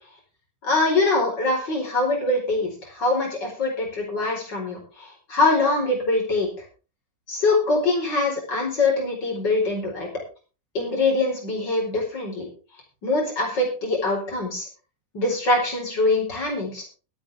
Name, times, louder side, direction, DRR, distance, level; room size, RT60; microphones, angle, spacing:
voice 1, 0.6-6.5 7.3-10.1 10.8-12.5 13.0-14.7 15.1-16.8, left 2 dB, 75° left, 1 dB, 5.4 m, -23 dB
21.5 x 8.9 x 3.6 m, 0.35 s
omnidirectional pair, 1.9 m